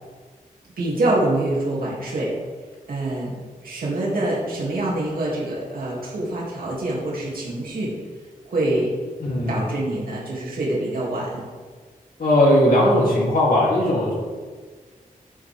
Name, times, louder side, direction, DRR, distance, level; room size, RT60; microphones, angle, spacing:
voice 1, 0.8-2.3 2.9-3.3 3.6-7.9 8.5-8.9 9.5-11.4, right 2 dB, 90° right, -5 dB, 2.4 m, -25 dB
voice 2, 9.2-9.6 12.2-14.1, left 1 dB, 75° left, -4 dB, 2.8 m, -18 dB
15.0 x 6.4 x 3.5 m, 1.5 s
wide cardioid pair, 105°, 15 cm